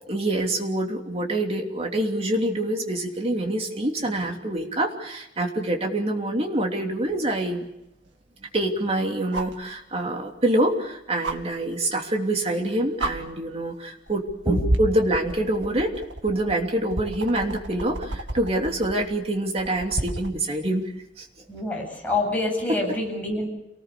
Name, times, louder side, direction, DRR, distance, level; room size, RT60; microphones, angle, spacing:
voice 1, 0.1-7.6 8.5-15.9 16.2-20.9 21.2-21.3 22.9-23.0, right 1 dB, 35° right, 2 dB, 3.0 m, -26 dB
sound 1, 7.1-7.2 9.3-9.6 11.2-11.4 12.5-12.6 13.0-13.1 14.1-14.3 14.7-20.4 22.0-22.1, right 2 dB, 80° right, 2.2 m, -32 dB
voice 2, 21.5-23.5, left 1 dB, 10° left, -1 dB, 7.9 m, -26 dB
28.0 x 19.5 x 6.9 m, 0.85 s
head